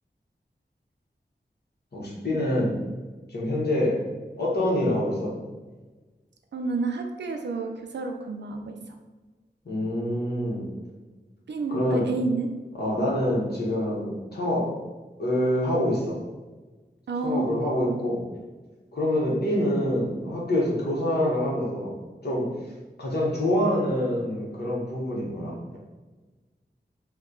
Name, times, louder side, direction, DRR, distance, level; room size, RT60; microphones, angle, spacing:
voice 1, 1.9-2.8 3.3-4.0 4.4-5.3 9.6-10.7 11.7-12.1 12.8-14.8 15.2-16.2 17.2-18.2 18.9-22.0 22.2-22.5 23.0-25.8, left 1 dB, 65° left, -5 dB, 1.0 m, -26 dB
voice 2, 6.5-8.8 10.5-10.7 11.5-12.5 13.0-13.1 17.1-18.0, right 3 dB, 80° right, 4 dB, 0.4 m, -30 dB
3.0 x 2.1 x 3.7 m, 1.3 s
wide cardioid pair, 85°, 18 cm